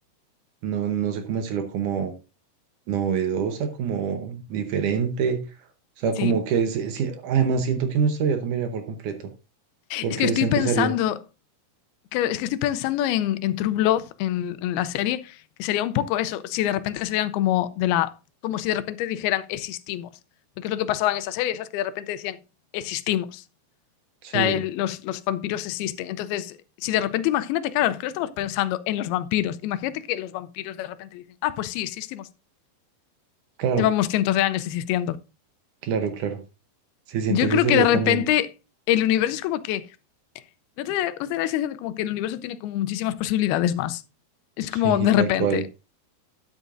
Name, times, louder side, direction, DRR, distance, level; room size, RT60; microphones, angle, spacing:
voice 1, 0.6-2.1 2.9-5.4 6.0-9.3 10.0-11.0 24.2-24.6 33.6-33.9 35.8-36.4 37.1-38.2 44.7-45.6, right 6 dB, 70° right, 2.1 m, -25 dB
voice 2, 9.9-11.2 12.1-18.1 18.4-20.1 20.6-22.4 22.7-23.4 24.3-26.6 26.8-32.3 33.8-35.2 37.3-38.5 38.9-39.9 40.8-44.0 44.6-45.6, left 13 dB, 90° left, 2.6 m, -25 dB
12.5 x 10.0 x 2.5 m
omnidirectional pair, 4.4 m